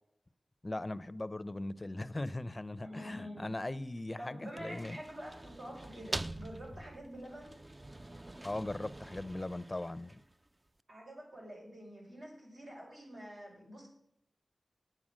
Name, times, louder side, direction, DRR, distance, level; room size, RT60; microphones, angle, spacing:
voice 1, 0.6-5.0 8.4-10.2, left 2 dB, 30° left, 0.5 m, -39 dB
voice 2, 2.8-3.5 4.2-7.5 10.9-13.9, equal, 80° right, 4.8 m, -47 dB
sound 1, 4.4-10.5, right 1 dB, 25° right, 0.4 m, -45 dB
9.1 x 8.7 x 6.3 m
wide cardioid pair, 60°, 0 cm